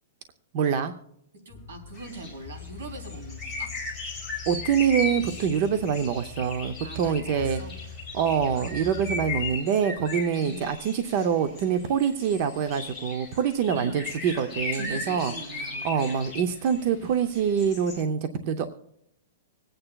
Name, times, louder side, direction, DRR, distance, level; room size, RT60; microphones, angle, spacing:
voice 1, 0.5-0.9 4.5-7.6 8.1-15.3 15.6-18.7, right 7 dB, 30° right, 10 dB, 0.5 m, -25 dB
voice 2, 1.4-3.7 6.8-7.7 10.4-10.7 13.7-14.0 14.7-15.9, right 2 dB, 75° right, 4 dB, 3.2 m, -40 dB
sound 1, 1.5-9.6, left 7 dB, 25° left, 0.6 m, -43 dB
sound 2, 2.0-2.3 2.6-2.7 3.0-16.8 17.3-18.0, left 3 dB, 5° right, 3.2 m, -37 dB
26.0 x 8.8 x 2.3 m, 0.74 s
supercardioid pair, 180°, 0 cm